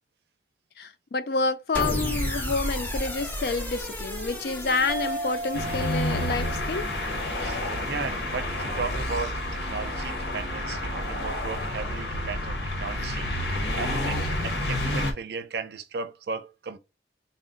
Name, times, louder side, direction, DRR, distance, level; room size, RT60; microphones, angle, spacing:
voice 1, 0.8-6.9, left 3 dB, 60° left, 0.4 m, -28 dB
sound 1, 1.7-8.1, equal, 10° left, 0.5 m, -34 dB
sound 2, 4.9-9.8, right 2 dB, 20° right, 0.7 m, -38 dB
sound 3, 5.5-15.1, left 1 dB, 90° left, 1.0 m, -29 dB
voice 2, 7.4-16.8, right 4 dB, 70° right, 0.5 m, -36 dB
4.1 x 2.1 x 3.7 m
head